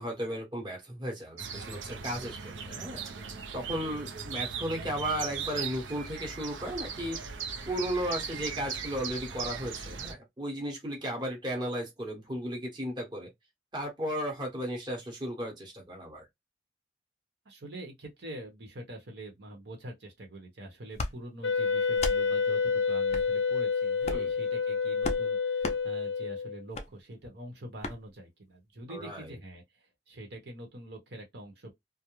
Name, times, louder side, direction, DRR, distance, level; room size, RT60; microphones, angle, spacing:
voice 1, 0.0-3.0 3.5-7.2 7.6-13.3 13.7-16.3 24.1-24.3 28.9-29.3, equal, 25° right, 0.9 m, -35 dB
sound 1, 1.4-10.1, right 6 dB, 85° right, 0.6 m, -38 dB
voice 2, 17.4-31.7, right 1 dB, 65° right, 0.9 m, -45 dB
sound 2, 20.9-21.1 21.9-22.2 23.1-23.3 24.0-24.3 25.0-25.2 25.6-25.8 26.7-26.9 27.8-28.0, left 2 dB, 35° left, 0.4 m, -33 dB
Wind instrument woodwind instrument, 21.4-26.6, left 5 dB, 80° left, 0.7 m, -28 dB
2.4 x 2.1 x 3.0 m
head